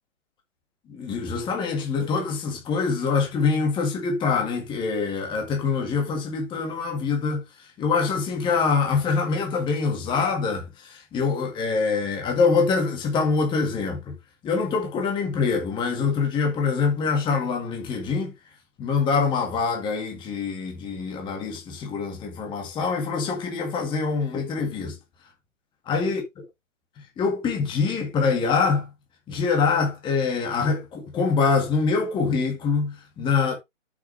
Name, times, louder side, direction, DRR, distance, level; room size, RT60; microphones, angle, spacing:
voice 1, 0.9-7.4 7.8-14.1 14.4-18.3 18.8-25.0 25.9-26.2 27.2-28.9 29.3-33.6, left 5 dB, 10° left, 1.9 m, -24 dB
8.1 x 6.1 x 3.4 m
hypercardioid pair, 145°, 39 cm